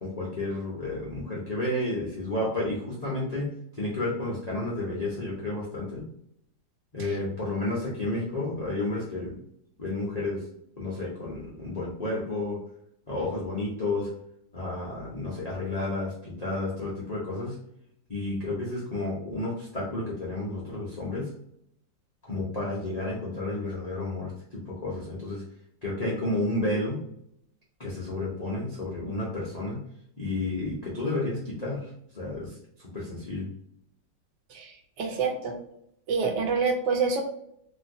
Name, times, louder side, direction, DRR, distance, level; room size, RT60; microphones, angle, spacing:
voice 1, 0.0-3.5 3.8-6.0 6.9-9.4 9.8-10.4 10.8-12.6 13.1-14.1 14.5-17.5 18.1-21.3 22.2-25.4 25.8-27.0 27.8-29.8 30.2-31.8 32.1-32.5 32.9-33.5, left 2 dB, 75° left, -6 dB, 0.3 m, -31 dB
voice 2, 34.5-35.6 36.1-37.2, right 5 dB, 75° right, 3 dB, 1.2 m, -27 dB
3.0 x 2.7 x 2.6 m, 0.72 s
omnidirectional pair, 2.0 m